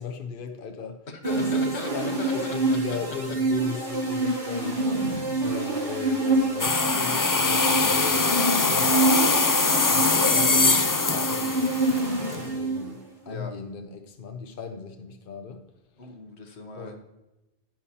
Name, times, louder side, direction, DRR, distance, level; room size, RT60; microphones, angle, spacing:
voice 1, 0.0-1.0 1.4-4.8 5.4-8.3 8.6-9.2 9.9-15.6 16.7-17.0, left 5 dB, 55° left, 0.9 m, -37 dB
voice 2, 1.1-2.8 3.3-3.4 13.3-13.5 16.0-17.0, left 2 dB, 80° left, 1.5 m, -37 dB
sound 1, 1.2-13.0, right 2 dB, 45° right, 2.0 m, -27 dB
sound 2, 6.6-12.4, left 4 dB, 30° left, 0.4 m, -22 dB
10.5 x 10.0 x 2.8 m
omnidirectional pair, 1.1 m